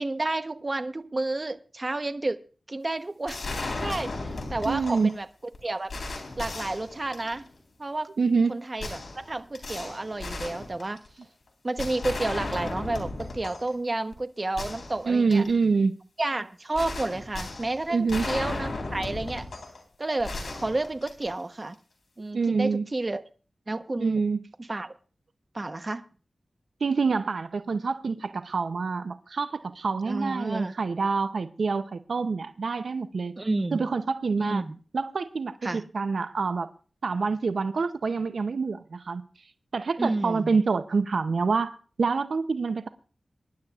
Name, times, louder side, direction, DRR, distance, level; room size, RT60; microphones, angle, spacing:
voice 1, 0.0-2.4 2.7-3.4 3.8-5.3 5.6-5.9 6.4-7.5 7.8-8.1 8.5-11.0 11.6-15.4 16.2-19.5 20.0-21.8 22.2-23.3 23.7-24.2 24.6-24.9 25.5-26.0 30.1-30.7 33.4-33.8 34.4-34.8 35.6-35.8 40.0-40.5, right 2 dB, 35° right, 9 dB, 0.9 m, -30 dB
sound 1, 3.3-5.2 5.5-5.6 5.9-7.5 8.8-11.2 11.8-13.7 14.1-14.2 14.6-15.6 16.7-19.8 20.2-21.5, left 2 dB, 80° left, 3.7 m, -35 dB
voice 2, 4.7-5.1 8.2-8.6 15.1-15.9 17.9-18.2 22.3-22.8 24.0-24.4 26.8-33.4 33.7-34.6 34.9-36.7 37.0-39.2 39.7-42.9, right 4 dB, 80° right, 10 dB, 0.6 m, -26 dB
23.0 x 11.0 x 2.4 m, 0.37 s
wide cardioid pair, 70°, 0 cm